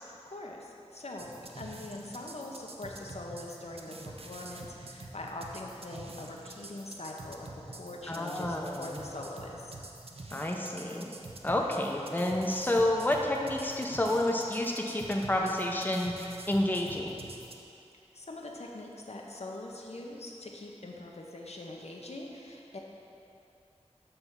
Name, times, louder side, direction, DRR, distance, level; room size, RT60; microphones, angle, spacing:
voice 1, 0.1-1.3 1.6-9.8 18.1-22.8, left 2 dB, 65° left, -1 dB, 0.8 m, -43 dB
sound 1, 1.2-17.6, right 2 dB, 55° right, 0.6 m, -47 dB
voice 2, 8.1-9.0 10.3-11.1 11.4-17.1, left 1 dB, 15° left, 0 dB, 0.7 m, -29 dB
7.9 x 3.4 x 5.8 m, 2.7 s
wide cardioid pair, 40°, 12 cm